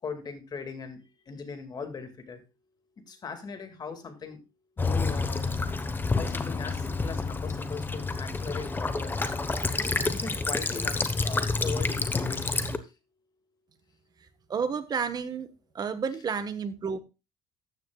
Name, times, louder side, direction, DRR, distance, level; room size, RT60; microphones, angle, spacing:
voice 1, 0.0-2.4 3.1-4.4 4.8-5.5 6.1-9.2 9.8-12.5 12.8-12.9, left 5 dB, 35° left, 8 dB, 2.1 m, -39 dB
Child speech kid speaking / Bird vocalization bird call bird song / Stream, 4.8-12.8, left 3 dB, 15° left, 1.0 m, -29 dB
voice 2, 14.5-15.5 15.7-17.0, right 6 dB, 35° right, 11 dB, 1.2 m, -30 dB
14.0 x 9.5 x 2.3 m, 0.27 s
cardioid pair, 115°, 12 cm